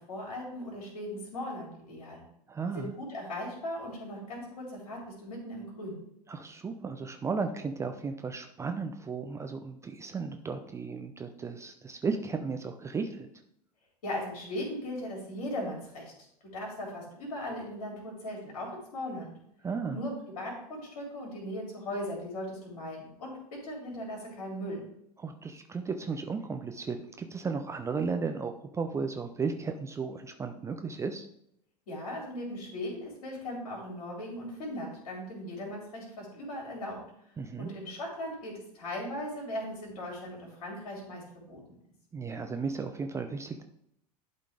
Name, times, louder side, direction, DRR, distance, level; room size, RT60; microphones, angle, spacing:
voice 1, 0.1-2.2 2.7-6.0 14.0-16.1 16.5-19.3 19.9-20.1 20.4-24.8 31.9-37.0 37.6-41.6, left 1 dB, 60° left, -1 dB, 3.2 m, -38 dB
voice 2, 2.5-2.9 6.3-13.3 19.6-20.0 25.2-31.3 37.4-37.7 42.1-43.6, right 5 dB, 15° right, 6 dB, 0.5 m, -35 dB
11.0 x 3.8 x 3.6 m, 0.74 s
figure-of-eight pair, 85°, 20 cm